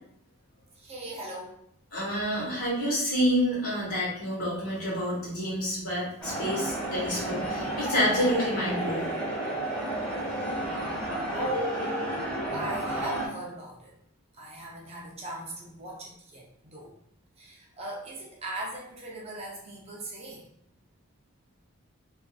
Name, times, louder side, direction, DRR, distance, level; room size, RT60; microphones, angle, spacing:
voice 1, 0.7-1.5 11.3-11.9 12.5-13.9 14.3-16.5 16.7-16.9 17.4-20.4, right 1 dB, 30° right, -3 dB, 0.5 m, -38 dB
voice 2, 1.9-9.1, equal, 85° left, -6 dB, 1.2 m, -28 dB
sound 1, 6.2-13.3, right 1 dB, 5° left, 1.1 m, -31 dB
2.5 x 2.4 x 2.4 m, 0.69 s
head